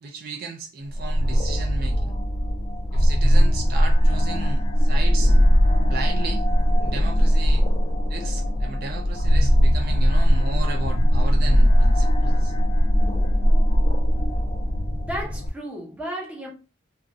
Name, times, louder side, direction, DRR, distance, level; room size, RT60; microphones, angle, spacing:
voice 1, 0.0-2.1 2.9-5.4 5.8-6.4 6.8-7.6 8.1-12.5, right 3 dB, 50° right, 0.3 m, -35 dB
sound 1, 0.9-15.5, equal, 35° left, 0.3 m, -19 dB
voice 2, 15.0-16.5, equal, 5° right, 0.7 m, -33 dB
2.4 x 2.0 x 2.5 m
head